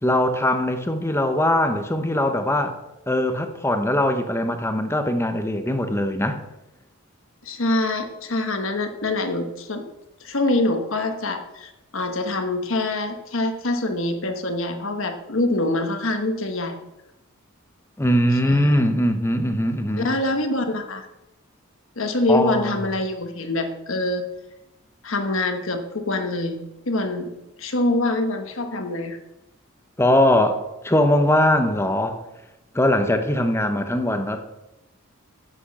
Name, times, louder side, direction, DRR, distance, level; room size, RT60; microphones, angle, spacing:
voice 1, 0.0-2.8 3.1-6.4 18.0-20.1 22.3-22.8 30.0-32.2 32.7-34.4, left 1 dB, 10° left, 7 dB, 0.8 m, -21 dB
voice 2, 7.4-9.8 10.2-16.8 18.4-18.8 20.0-21.1 22.0-24.2 25.0-26.6 26.9-27.3 27.6-29.2, left 2 dB, 65° left, 6 dB, 1.3 m, -25 dB
10.0 x 6.3 x 7.3 m, 0.93 s
head